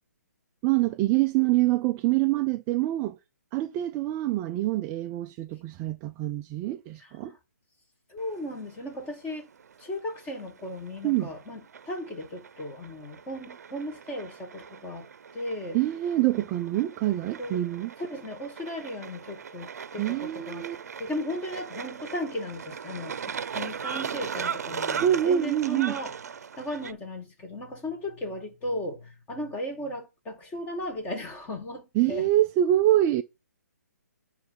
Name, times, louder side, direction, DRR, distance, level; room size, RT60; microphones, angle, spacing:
voice 1, 0.6-3.2 3.5-7.3 11.0-11.3 15.7-17.9 20.0-20.8 25.0-25.9 31.9-33.2, right 13 dB, 20° right, 0.4 m, -25 dB
voice 2, 7.0-7.4 8.1-9.5 9.8-11.6 11.9-15.1 15.3-15.8 17.4-17.6 18.0-20.7 21.0-26.1 26.6-32.3, left 1 dB, 15° left, 2.2 m, -36 dB
sound 1, 8.2-26.9, right 7 dB, 60° right, 0.7 m, -39 dB
9.6 x 3.2 x 5.8 m
figure-of-eight pair, 140°, 9 cm